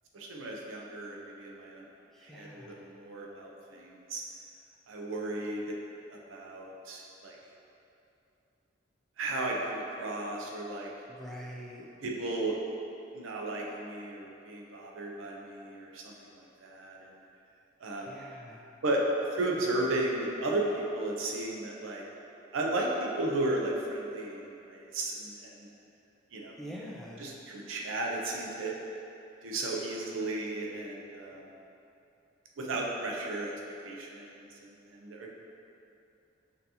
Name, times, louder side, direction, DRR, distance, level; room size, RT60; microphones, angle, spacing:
voice 1, 0.1-1.8 2.2-4.2 4.9-5.8 6.1-7.4 9.2-10.9 12.0-12.6 13.1-17.1 17.8-18.1 18.8-19.0 19.3-22.0 22.5-25.7 26.3-26.6 27.2-28.7 29.4-31.5 32.6-33.5 33.8-35.3, right 2 dB, 90° right, -1 dB, 0.6 m, -34 dB
voice 2, 2.1-2.8 11.1-11.9 18.0-18.7 26.6-27.3, equal, ahead, -4 dB, 0.3 m, -45 dB
5.7 x 2.7 x 2.8 m, 2.7 s
head